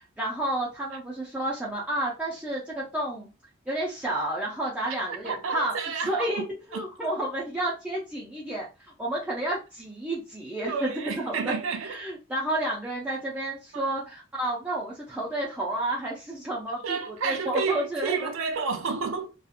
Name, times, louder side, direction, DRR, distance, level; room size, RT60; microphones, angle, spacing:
voice 1, 0.0-3.3 3.7-5.7 6.0-6.4 6.7-8.7 9.0-11.5 11.8-18.3, right 1 dB, 5° right, 0.5 m, -31 dB
voice 2, 5.2-6.5 6.7-6.8 10.6-12.0 13.7-13.9 16.8-19.3, right 5 dB, 75° right, 0.4 m, -30 dB
2.8 x 2.4 x 2.4 m
head